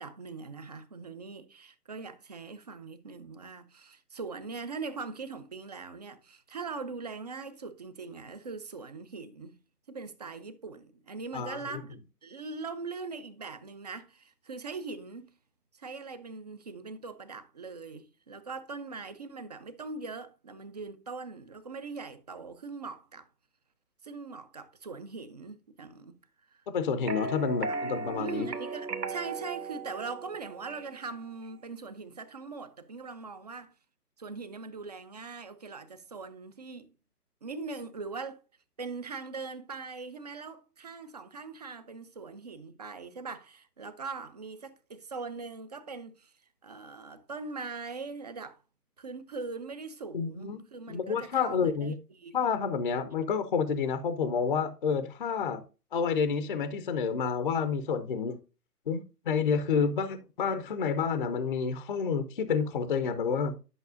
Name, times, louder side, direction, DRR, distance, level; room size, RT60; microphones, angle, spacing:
voice 1, 0.0-9.6 9.9-15.3 15.7-23.3 24.0-26.2 26.5-26.6 27.2-27.3 27.7-27.8 28.2-33.7 34.2-36.9 37.4-38.4 38.8-46.3 46.6-48.6 49.0-52.4, right 4 dB, 25° right, 0.6 m, -41 dB
voice 2, 26.7-28.5 50.1-50.6 50.9-51.9 52.3-55.6 55.9-58.4 58.9-63.6, left 6 dB, 35° left, 0.7 m, -29 dB
sound 1, 27.0-31.1, right 3 dB, 80° right, 1.2 m, -36 dB
11.0 x 6.0 x 2.6 m
figure-of-eight pair, 135°, 47 cm